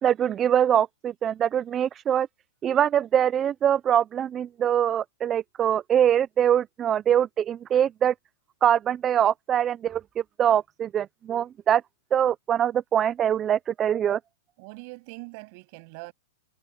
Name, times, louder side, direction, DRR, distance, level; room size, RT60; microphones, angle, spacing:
voice 1, 0.0-2.3 2.6-8.1 8.6-10.0 10.4-11.8 12.1-14.2, right 9 dB, 20° right, 0.4 m, -23 dB
voice 2, 14.6-16.1, right 30 dB, 45° right, 7.4 m, -42 dB
hypercardioid pair, 145°, 0 cm